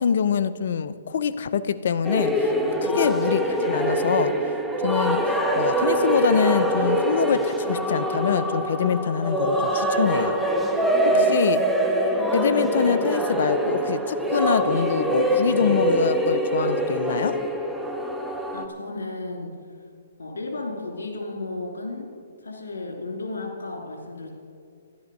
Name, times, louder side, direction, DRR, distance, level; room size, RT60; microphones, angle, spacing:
voice 1, 0.0-2.5 2.8-4.3 4.8-10.4 11.0-11.6 12.3-17.4, left 7 dB, 65° left, 13 dB, 0.5 m, -24 dB
sound 1, 2.0-18.7, right 1 dB, ahead, 0.9 m, -24 dB
voice 2, 11.1-11.6 18.5-19.5 20.2-22.1 22.4-24.4, left 2 dB, 85° left, 1 dB, 2.9 m, -34 dB
12.5 x 11.0 x 5.4 m, 2.3 s
hypercardioid pair, 140°, 0 cm